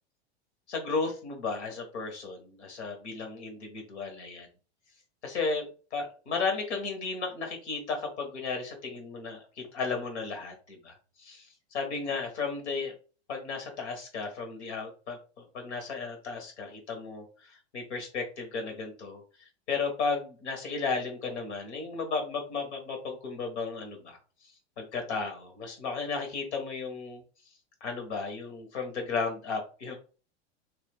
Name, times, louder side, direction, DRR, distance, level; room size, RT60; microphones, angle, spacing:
voice 1, 0.7-4.5 5.2-5.6 5.9-11.5 11.7-12.9 13.3-27.2 27.8-30.0, left 4 dB, 80° left, 4 dB, 1.5 m, -34 dB
2.9 x 2.2 x 3.5 m, 0.36 s
hypercardioid pair, 110°, 33 cm